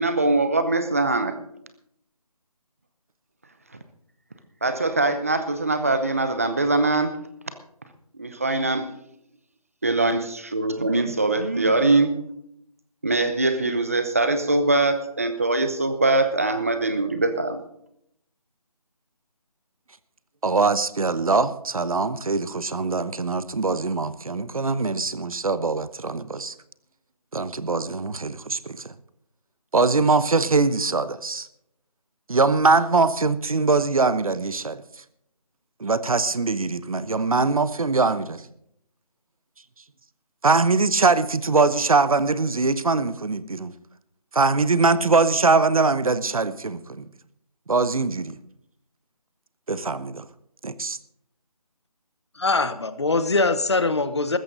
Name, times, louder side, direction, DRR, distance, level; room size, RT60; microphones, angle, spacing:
voice 1, 0.0-1.4 4.6-7.2 8.1-8.9 9.8-12.3 13.0-17.6, right 2 dB, 25° right, 10 dB, 0.8 m, -22 dB
voice 2, 20.4-26.5 27.3-28.9 29.7-31.5 32.3-34.8 35.8-38.5 40.4-43.7 44.3-47.1 47.7-48.4 49.7-50.2 50.6-51.0, right 3 dB, 65° right, 15 dB, 0.9 m, -22 dB
voice 3, 52.4-54.4, left 3 dB, 45° left, 13 dB, 1.0 m, -22 dB
15.0 x 13.5 x 4.0 m, 0.73 s
figure-of-eight pair, 175°, 20 cm